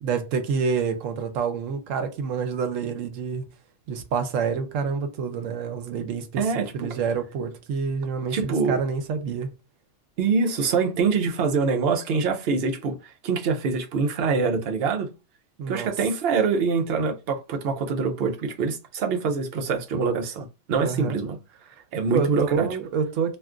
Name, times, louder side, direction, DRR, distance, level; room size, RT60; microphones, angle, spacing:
voice 1, 0.0-3.4 3.9-9.5 15.6-15.9 20.8-21.2 22.1-23.4, right 6 dB, 85° right, 0.9 m, -27 dB
voice 2, 6.4-6.9 8.3-8.8 10.2-15.1 15.7-21.4 21.9-22.7, right 5 dB, 60° right, 0.7 m, -25 dB
2.4 x 2.3 x 3.6 m
omnidirectional pair, 1.3 m